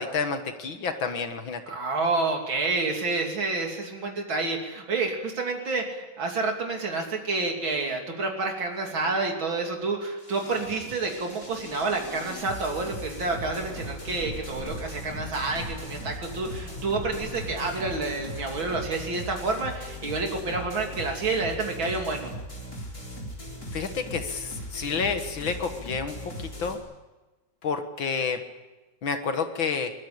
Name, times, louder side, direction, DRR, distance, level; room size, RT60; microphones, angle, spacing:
voice 1, 0.0-1.6 23.7-26.8 27.6-28.4 29.0-29.9, left 5 dB, 80° left, 7 dB, 2.3 m, -29 dB
voice 2, 1.7-22.3, right 3 dB, 80° right, 1 dB, 3.8 m, -29 dB
sound 1, 10.2-26.7, equal, 45° left, 5.2 m, -39 dB
sound 2, 13.3-18.8, equal, 65° right, 8.2 m, -44 dB
22.5 x 21.5 x 8.6 m, 1.1 s
omnidirectional pair, 2.1 m